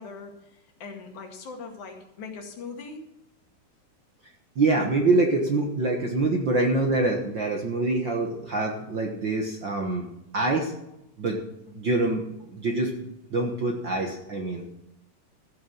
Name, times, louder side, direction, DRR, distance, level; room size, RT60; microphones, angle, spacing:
voice 1, 0.0-3.0, left 4 dB, 70° left, 2 dB, 3.3 m, -41 dB
voice 2, 4.5-10.1 10.3-10.7 11.2-11.4 11.7-12.2 12.5-14.6, right 2 dB, 50° right, 1 dB, 1.5 m, -25 dB
14.5 x 6.6 x 7.1 m, 0.88 s
omnidirectional pair, 3.7 m